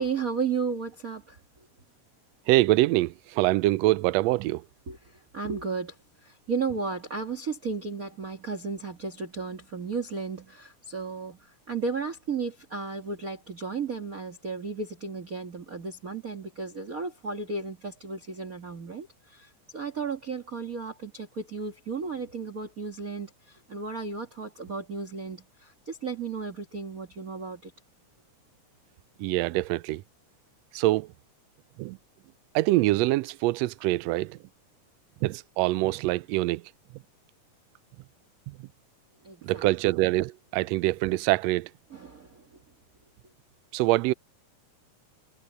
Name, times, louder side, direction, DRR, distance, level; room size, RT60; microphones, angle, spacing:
voice 1, 0.0-1.7 4.9-27.7 39.2-39.9 41.9-42.6, right 5 dB, 30° right, 2.1 m, -34 dB
voice 2, 2.5-4.6 29.2-30.0 30.7-31.1 31.8-32.0 32.5-34.4 35.2-36.6 38.5-38.7 39.4-41.7 43.7-44.1, right 18 dB, 80° right, 1.5 m, -24 dB
omnidirectional pair, 3.5 m